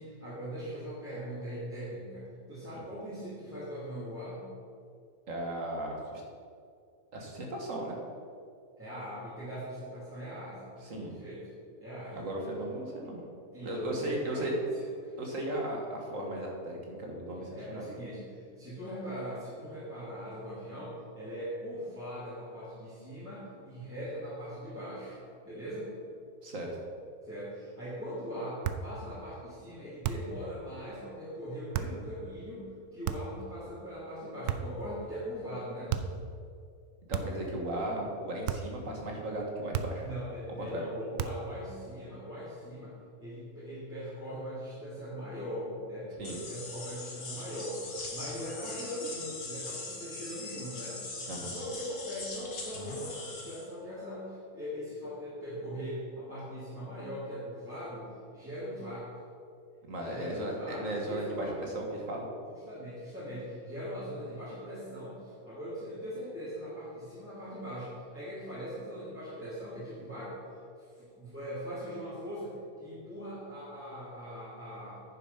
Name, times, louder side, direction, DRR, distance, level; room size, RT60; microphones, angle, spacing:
voice 1, 0.0-4.5 8.8-10.7 11.0-11.4 11.8-12.3 13.5-14.5 14.7-15.1 17.3-25.9 27.2-35.9 40.0-51.0 51.5-59.2 60.0-61.7 62.5-70.4 71.0-75.0, equal, 10° right, -12 dB, 2.8 m, -41 dB
voice 2, 5.3-6.2 7.1-8.0 10.8-11.1 12.1-13.3 13.6-14.5 15.2-17.9 26.4-26.8 37.1-40.1 40.6-40.9 46.2-46.4 51.3-51.6 59.9-62.3, right 1 dB, 60° right, 0 dB, 2.0 m, -36 dB
sound 1, 28.6-28.9 30.0-30.4 31.7-32.0 33.0-33.4 34.5-34.9 35.9-36.2 37.1-37.5 38.5-38.8 39.7-40.1 41.2-41.5, right 9 dB, 85° right, 1.1 m, -34 dB
sound 2, 46.2-53.7, left 3 dB, 85° left, 2.2 m, -41 dB
9.6 x 6.9 x 5.8 m, 2.4 s
omnidirectional pair, 1.6 m